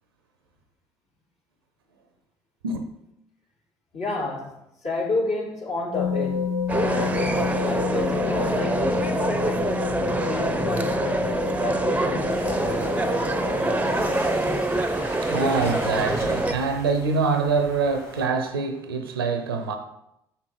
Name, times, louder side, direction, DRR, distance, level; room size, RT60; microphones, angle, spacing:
voice 1, 3.9-4.5 4.8-9.7 10.2-13.7, left 2 dB, 55° left, 3.4 m, -31 dB
sound 1, 5.9-14.6, left 5 dB, 75° left, 0.8 m, -29 dB
sound 2, 6.7-16.5, right 2 dB, 10° right, 0.8 m, -25 dB
sound 3, 12.3-18.3, equal, 90° left, 3.5 m, -38 dB
voice 2, 15.2-19.8, right 4 dB, 85° right, 0.8 m, -25 dB
7.4 x 5.9 x 4.7 m
figure-of-eight pair, 50°, 12 cm